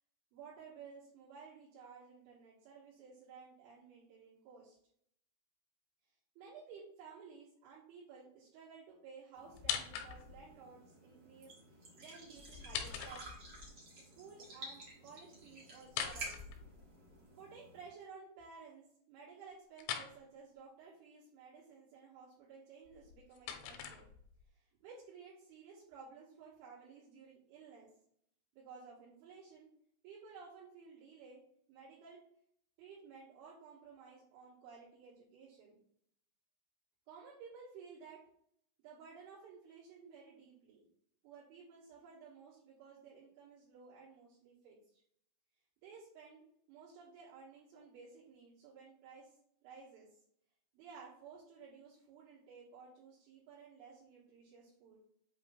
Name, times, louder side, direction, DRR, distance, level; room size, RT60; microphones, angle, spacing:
voice 1, 0.3-4.8 6.1-13.4 14.0-16.4 17.4-24.1 24.5-27.9 28.5-29.7 30.0-31.4 31.7-32.2 32.8-35.8 37.1-38.2 38.8-40.8 41.2-45.0 45.8-49.3 49.6-50.1 50.7-55.0, right 5 dB, 75° right, -10 dB, 4.2 m, -55 dB
sound 1, 9.3-17.8, right 2 dB, 60° right, 1.3 m, -52 dB
sound 2, 9.5-10.5 12.5-13.7 15.8-17.2 19.8-20.1 22.9-24.5, left 8 dB, 80° left, 3.1 m, -42 dB
8.2 x 3.0 x 5.3 m, 0.67 s
omnidirectional pair, 5.7 m